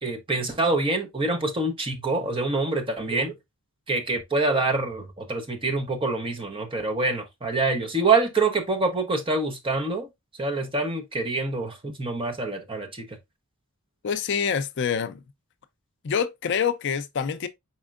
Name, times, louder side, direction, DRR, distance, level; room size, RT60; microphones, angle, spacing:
voice 1, 0.0-3.3 3.9-10.1 10.4-13.1, right 3 dB, 25° right, 0.8 m, -26 dB
voice 2, 14.0-15.2 16.0-17.5, left 7 dB, 50° left, 0.4 m, -26 dB
4.3 x 4.3 x 2.4 m
head